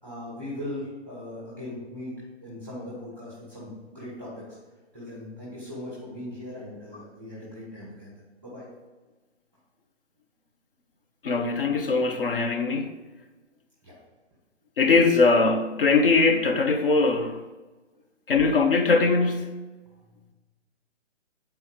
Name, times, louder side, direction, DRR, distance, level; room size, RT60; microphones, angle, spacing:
voice 1, 0.0-2.1 2.4-4.4 4.9-8.7 13.8-13.9, left 1 dB, 5° left, 1.6 m, -39 dB
voice 2, 11.2-12.9 14.8-17.4 18.3-19.5, left 4 dB, 50° left, 0.8 m, -21 dB
8.1 x 4.5 x 4.8 m
hypercardioid pair, 175°, 35 cm